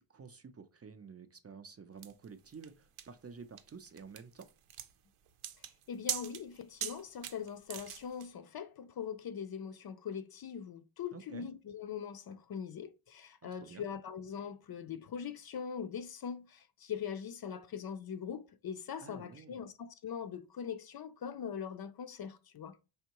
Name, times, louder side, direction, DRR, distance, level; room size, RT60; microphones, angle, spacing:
voice 1, 0.0-4.5 11.1-11.5 13.4-13.9 19.0-19.7, right 5 dB, 30° right, 0.4 m, -51 dB
sound 1, 2.0-8.3, right 10 dB, 90° right, 0.7 m, -42 dB
voice 2, 5.9-22.8, left 7 dB, 50° left, 0.5 m, -42 dB
5.2 x 3.5 x 2.9 m
wide cardioid pair, 135°, 49 cm